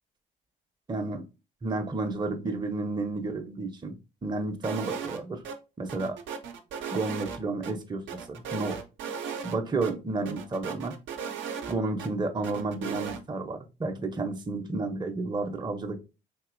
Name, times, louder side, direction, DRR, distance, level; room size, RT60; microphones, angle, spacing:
voice 1, 0.9-1.3 1.6-4.0 4.2-5.4 5.8-6.2 6.9-8.8 9.4-11.0 11.7-16.0, right 3 dB, 20° right, 0.6 m, -31 dB
sound 1, 4.6-5.2 5.4-5.6 5.9-7.7 8.1-9.6 9.8-9.9 10.3-12.1 12.4-13.2, right 6 dB, 70° right, 0.6 m, -36 dB
3.5 x 2.7 x 2.5 m
hypercardioid pair, 55°, 20 cm